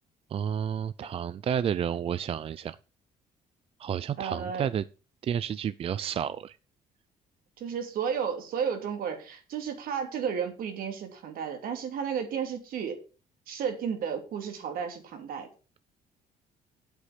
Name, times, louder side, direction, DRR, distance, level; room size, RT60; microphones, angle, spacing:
voice 1, 0.3-2.8 3.8-4.8 5.2-6.5, right 8 dB, 40° right, 16 dB, 0.4 m, -31 dB
voice 2, 4.2-4.7 7.6-13.0 13.5-15.5, right 7 dB, 70° right, 5 dB, 2.8 m, -33 dB
8.3 x 8.3 x 5.9 m, 0.35 s
cardioid pair, 130°, 15 cm